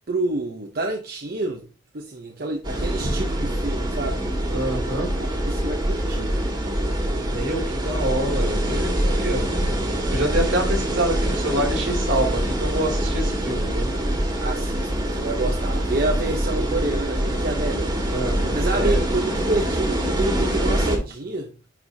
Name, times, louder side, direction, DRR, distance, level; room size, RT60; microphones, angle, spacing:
voice 1, 0.1-1.6 1.9-4.2 5.2-6.3 14.4-17.9 18.5-21.5, right 2 dB, 50° right, 0.7 m, -28 dB
sound 1, 2.6-21.0, right 1 dB, 25° right, 1.7 m, -24 dB
voice 2, 4.5-5.1 7.3-9.5 10.1-13.9 16.5-16.7 18.1-19.0, right 1 dB, 75° right, 2.7 m, -26 dB
9.9 x 4.8 x 2.7 m
head